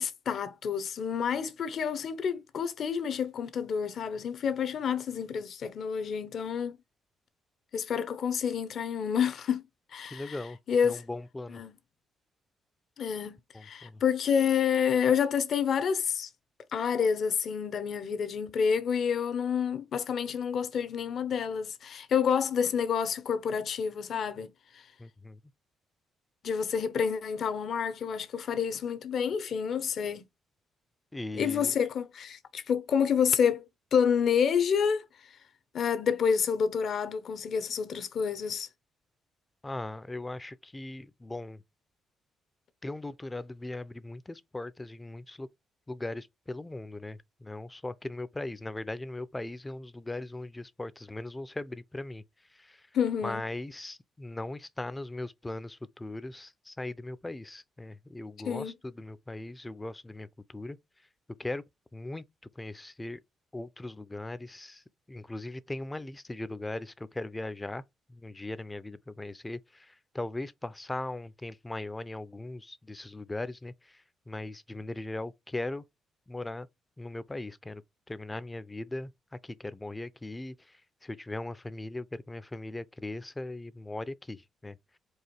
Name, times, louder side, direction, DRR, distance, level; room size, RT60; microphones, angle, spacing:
voice 1, 0.0-6.8 7.7-9.6 9.9-10.4 10.7-11.0 11.5-11.7 13.0-13.4 13.6-16.3 16.7-24.5 26.4-30.3 31.4-33.6 33.9-35.0 35.7-38.7 52.9-53.4 58.5-58.7, left 7 dB, 60° left, 0.7 m, -28 dB
voice 2, 10.1-10.6 10.8-11.6 13.5-14.0 25.0-25.4 31.1-31.7 39.6-41.6 42.8-45.5 45.9-52.2 52.5-52.9 53.2-60.8 61.4-61.6 61.9-62.3 62.6-63.2 63.5-67.8 68.1-75.8 76.3-76.7 77.0-77.8 78.1-84.8, left 2 dB, 15° left, 0.5 m, -39 dB
4.8 x 2.5 x 4.3 m
cardioid pair, 90°, 0 cm